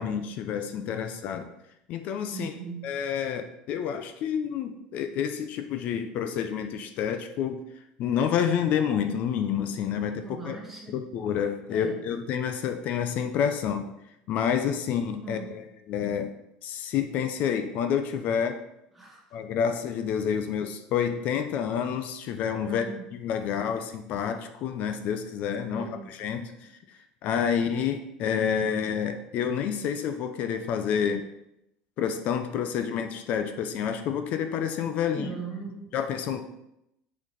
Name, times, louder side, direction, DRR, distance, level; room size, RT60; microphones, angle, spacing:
voice 1, 0.0-1.5 1.9-2.5 2.8-7.6 8.0-10.6 10.9-13.9 14.3-16.3 16.6-18.6 19.3-22.9 23.1-31.2 32.0-35.3 35.9-36.4, left 8 dB, 50° left, 8 dB, 0.6 m, -29 dB
voice 2, 2.3-2.8 10.2-11.0 11.7-12.0 15.2-15.6 19.0-19.2 22.7-23.1 25.7-26.2 35.0-35.9, right 4 dB, 5° right, -3 dB, 1.8 m, -39 dB
6.5 x 5.5 x 3.9 m, 0.82 s
supercardioid pair, 130°, 3 cm